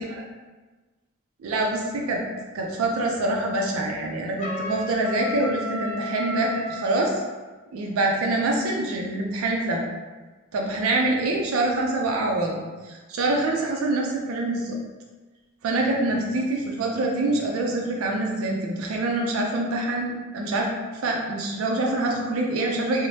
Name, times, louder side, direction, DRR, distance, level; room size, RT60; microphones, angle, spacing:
voice 1, 1.4-2.2 2.5-7.1 7.7-9.8 10.5-14.8 15.6-20.7 21.0-23.1, right 2 dB, 80° right, 0 dB, 0.4 m, -25 dB
Trumpet, 4.4-6.9, left 2 dB, 30° left, 0.4 m, -33 dB
2.7 x 2.0 x 3.1 m, 1.3 s
head